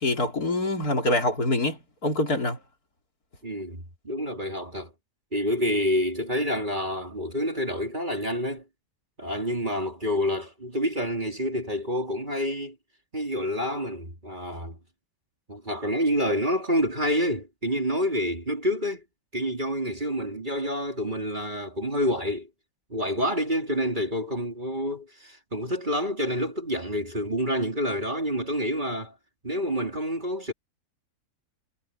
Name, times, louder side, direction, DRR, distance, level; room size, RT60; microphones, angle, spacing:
voice 1, 0.0-2.6, left 2 dB, 70° left, 4.4 m, -25 dB
voice 2, 3.4-4.9 5.3-8.6 9.2-12.8 13.1-14.8 15.5-19.0 19.3-22.5 22.9-29.1 29.4-30.5, equal, 30° right, 3.7 m, -28 dB
omnidirectional pair, 1.7 m